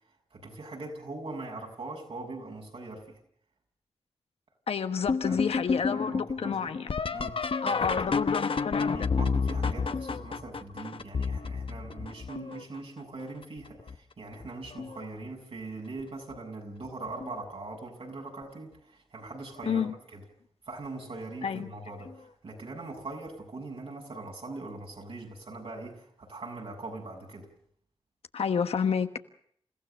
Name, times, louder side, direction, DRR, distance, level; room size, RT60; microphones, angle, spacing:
voice 1, 0.3-3.2 5.0-6.7 7.1-8.1 8.8-19.9 20.1-20.2 20.7-27.5, right 3 dB, 70° right, 6.9 m, -41 dB
voice 2, 4.7-6.9 7.6-9.1 19.7-19.9 21.4-21.7 28.3-29.2, left 6 dB, 90° left, 1.3 m, -30 dB
sound 1, 5.1-12.8 13.4-14.0 14.4-15.1 16.3-16.4 17.1-17.5 19.6-19.7 22.1-22.2, left 5 dB, 65° left, 0.9 m, -30 dB
28.5 x 15.5 x 6.7 m
cardioid pair, 55°, 10 cm